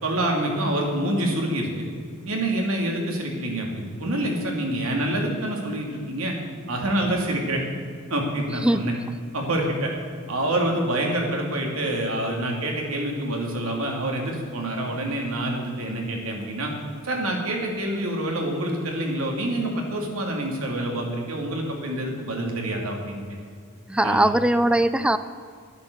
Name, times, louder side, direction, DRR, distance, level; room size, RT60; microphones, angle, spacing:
voice 1, 0.0-1.9 2.3-6.4 6.7-7.6 8.1-8.9 9.3-9.9 10.3-16.7 17.0-23.2 24.0-24.2, right 1 dB, 85° right, 1 dB, 2.6 m, -26 dB
voice 2, 23.9-25.2, right 1 dB, 5° right, 12 dB, 0.3 m, -20 dB
11.0 x 10.5 x 6.8 m, 2.1 s
head